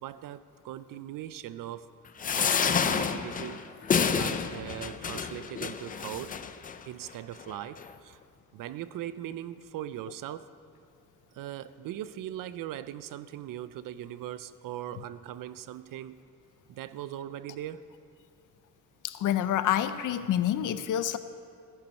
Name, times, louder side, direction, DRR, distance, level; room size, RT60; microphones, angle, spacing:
voice 1, 0.0-1.9 2.3-3.6 4.1-6.4 6.9-8.2 8.5-10.5 11.3-16.2 16.7-17.8, right 12 dB, 70° right, 14 dB, 0.6 m, -40 dB
sound 1, 2.2-6.8 7.4-7.5 7.8-7.9, left 6 dB, 25° left, 0.4 m, -29 dB
voice 2, 19.0-21.2, left 11 dB, 60° left, 12 dB, 0.6 m, -27 dB
15.5 x 10.5 x 5.4 m, 2.3 s
cardioid pair, 180°, 35 cm